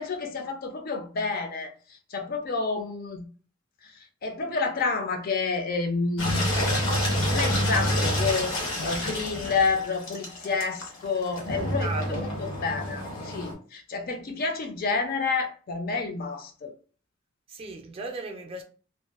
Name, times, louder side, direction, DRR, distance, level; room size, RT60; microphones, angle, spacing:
voice 1, 0.0-1.7 2.1-3.3 3.8-3.9 4.2-6.5 7.2-8.6 8.8-16.7, left 4 dB, 50° left, 0.4 m, -29 dB
Engine, 6.2-13.5, equal, 85° left, 0.8 m, -28 dB
voice 2, 11.6-12.3 17.5-18.6, right 3 dB, 30° right, 0.4 m, -37 dB
2.5 x 2.2 x 2.3 m
head